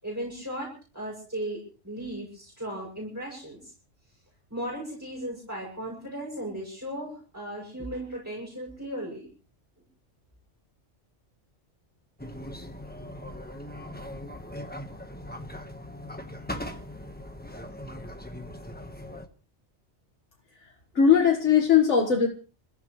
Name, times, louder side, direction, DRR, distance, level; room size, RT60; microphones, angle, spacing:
voice 1, 0.0-3.7 4.5-9.3, right 1 dB, 15° right, -3 dB, 7.2 m, -36 dB
sound 1, 12.2-19.3, left 1 dB, 10° left, 1.3 m, -40 dB
voice 2, 20.5-22.3, left 7 dB, 80° left, 2 dB, 2.0 m, -20 dB
28.5 x 15.0 x 3.2 m, 0.39 s
omnidirectional pair, 1.2 m